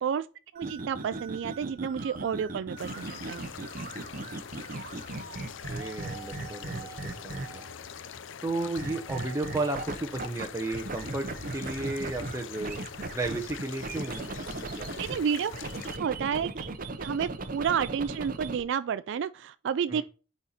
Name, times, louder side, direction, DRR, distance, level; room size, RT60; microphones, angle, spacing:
voice 1, 0.5-3.4 14.7-15.5 16.0-16.7 17.0-20.0, right 7 dB, 60° right, 0.3 m, -30 dB
sound 1, 0.6-7.8 8.8-10.5 10.7-15.2 15.5-18.6, right 2 dB, 45° right, 0.7 m, -38 dB
sound 2, 2.8-16.0, left 7 dB, 65° left, 0.5 m, -44 dB
voice 2, 5.7-7.6 8.4-12.8 13.1-14.9 19.9-20.0, right 2 dB, 15° right, 0.7 m, -34 dB
8.8 x 4.3 x 4.2 m
head